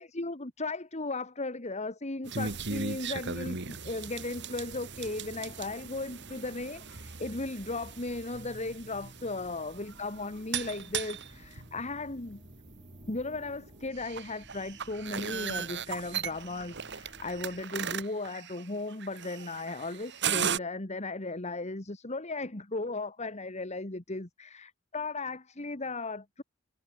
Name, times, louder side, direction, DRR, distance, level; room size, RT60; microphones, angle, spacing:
voice 1, 0.0-12.4 13.1-26.4, left 2 dB, 35° left, 1.8 m, -36 dB
sound 1, 2.2-20.6, right 7 dB, 60° right, 2.7 m, -38 dB
sound 2, 4.7-17.6, equal, 5° right, 6.3 m, -56 dB
head